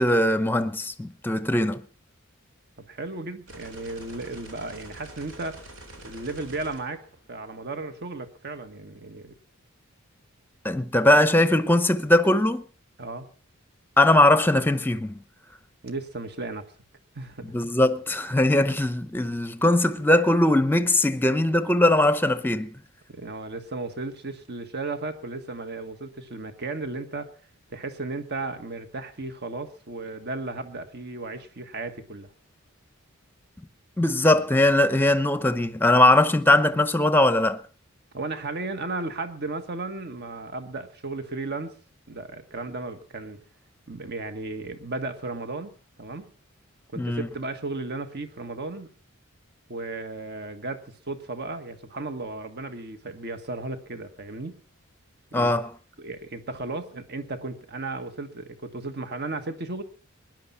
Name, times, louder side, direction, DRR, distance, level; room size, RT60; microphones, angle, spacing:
voice 1, 0.0-1.8 10.6-12.6 14.0-15.2 17.4-22.7 34.0-37.6 47.0-47.3 55.3-55.7, left 1 dB, 10° left, 0.8 m, -20 dB
voice 2, 2.8-5.6 6.0-7.0 7.3-9.3 13.0-13.3 15.8-16.7 17.1-17.5 23.1-27.3 27.7-32.3 38.1-41.8 42.1-43.4 43.9-46.3 46.9-48.9 49.7-54.6 55.3-55.6 56.0-59.8, right 3 dB, 50° right, 1.5 m, -35 dB
sound 1, 3.5-7.7, right 1 dB, 80° right, 4.0 m, -46 dB
20.0 x 10.5 x 5.6 m
head